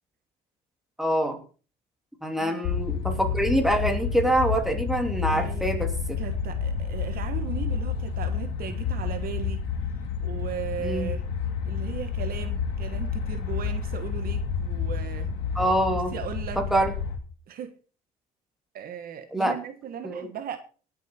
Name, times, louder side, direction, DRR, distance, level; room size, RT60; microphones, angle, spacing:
voice 1, 1.0-1.4 2.2-6.2 10.8-11.1 15.5-16.1 16.6-16.9 19.3-19.5 20.0-20.3, right 1 dB, ahead, 2.7 m, -25 dB
sound 1, 2.6-17.2, left 6 dB, 90° left, 2.4 m, -30 dB
voice 2, 5.3-5.7 6.2-9.7 10.2-11.3 11.7-15.3 16.1-16.6 17.5-17.8 18.7-20.6, right 8 dB, 60° right, 1.4 m, -37 dB
18.5 x 7.1 x 4.4 m
cardioid pair, 110°, 17 cm